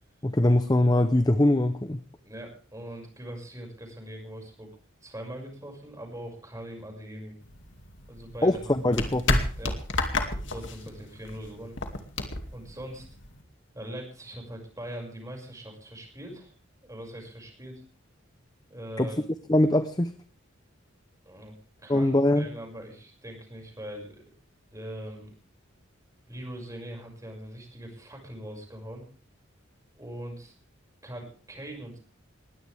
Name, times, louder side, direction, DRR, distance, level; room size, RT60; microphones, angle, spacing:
voice 1, 0.2-2.0 8.4-9.5 19.0-19.1 19.5-20.1 21.9-22.5, left 1 dB, 20° left, 11 dB, 0.7 m, -22 dB
voice 2, 2.1-4.7 5.0-7.3 8.1-8.8 9.5-9.8 10.4-11.8 12.5-13.1 13.7-16.5 16.8-17.8 18.7-19.2 21.2-24.2 24.7-25.3 26.3-29.0 29.9-30.5 31.0-32.0, right 1 dB, 15° right, 2 dB, 6.3 m, -41 dB
sound 1, 7.4-13.4, left 2 dB, 65° left, 2.5 m, -31 dB
21.0 x 17.0 x 3.5 m, 0.40 s
head